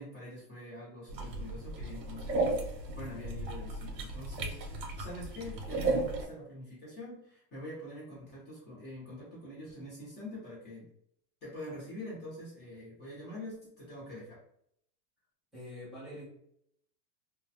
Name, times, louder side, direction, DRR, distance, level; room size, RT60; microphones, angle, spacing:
voice 1, 0.0-10.9 11.4-14.4, left 1 dB, 20° left, -7 dB, 0.9 m, -45 dB
sound 1, 1.1-6.3, right 2 dB, 85° right, 0.8 m, -35 dB
voice 2, 15.5-16.3, left 1 dB, ahead, -12 dB, 0.4 m, -45 dB
2.2 x 2.1 x 2.7 m, 0.71 s
supercardioid pair, 145°, 49 cm